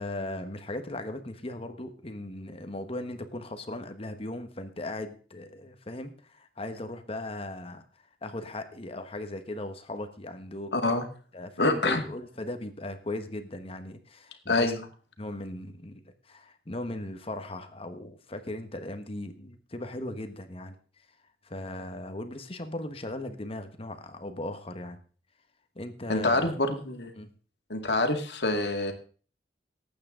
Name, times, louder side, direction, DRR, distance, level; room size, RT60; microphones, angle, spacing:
voice 1, 0.0-7.8 8.2-10.7 11.3-14.7 15.2-20.8 21.4-25.0 25.7-26.6 27.2-27.3, left 1 dB, 35° left, 8 dB, 1.3 m, -38 dB
voice 2, 10.7-11.0 11.6-12.0 14.5-14.8 26.1-27.1 27.7-28.9, left 2 dB, 65° left, 5 dB, 2.1 m, -26 dB
19.0 x 8.7 x 3.8 m, 0.39 s
head